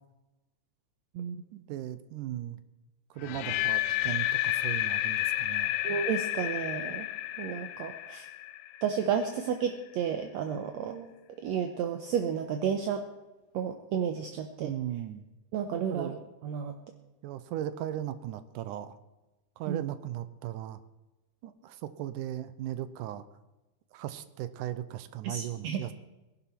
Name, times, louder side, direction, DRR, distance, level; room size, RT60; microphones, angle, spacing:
voice 1, 1.5-2.6 3.1-5.7 14.6-15.3 15.9-16.3 17.2-19.0 19.6-20.8 21.4-23.2 23.9-25.9, right 12 dB, 85° right, 13 dB, 2.3 m, -37 dB
sound 1, 3.2-9.2, left 14 dB, 85° left, 2.1 m, -31 dB
voice 2, 5.8-7.1 7.4-8.3 8.8-11.1 11.4-13.0 13.5-14.7 15.5-16.1 16.4-16.8 19.7-19.8 25.2-25.8, right 7 dB, 70° right, 5 dB, 1.9 m, -32 dB
19.0 x 11.5 x 4.4 m, 1.1 s
omnidirectional pair, 3.6 m